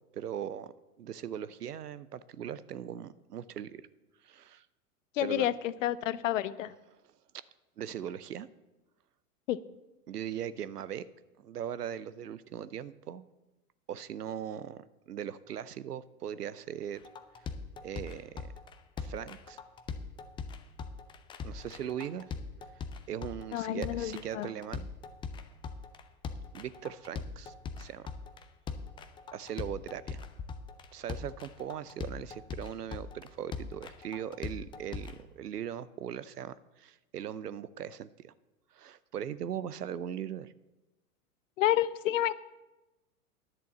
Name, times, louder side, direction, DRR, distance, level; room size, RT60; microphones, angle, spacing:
voice 1, 0.1-0.7 1.0-3.9 4.2-4.7 5.2-5.5 7.0-7.1 7.8-8.5 10.1-11.1 11.4-13.2 13.9-17.0 17.8-18.5 19.0-19.6 21.4-22.3 22.8-24.9 26.5-28.1 29.3-30.2 30.9-38.3 38.7-40.5, right 9 dB, 80° right, 17 dB, 0.7 m, -39 dB
voice 2, 5.2-6.7 9.5-9.6 23.5-24.5 41.6-42.3, left 13 dB, 55° left, 17 dB, 0.7 m, -29 dB
sound 1, 17.0-35.2, left 5 dB, 10° left, 0.4 m, -41 dB
11.0 x 6.9 x 7.5 m, 1.0 s
figure-of-eight pair, 100°, 46 cm